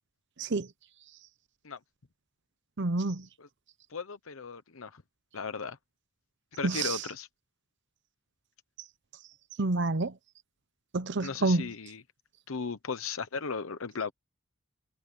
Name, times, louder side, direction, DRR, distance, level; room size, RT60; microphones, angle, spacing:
voice 1, 2.8-3.3 6.6-7.0 9.6-10.1 10.9-11.7, right 3 dB, 55° right, 0.8 m, -28 dB
voice 2, 3.9-5.0 5.3-5.8 6.6-7.3 11.2-12.0 12.5-14.1, left 5 dB, 70° left, 0.9 m, -36 dB
head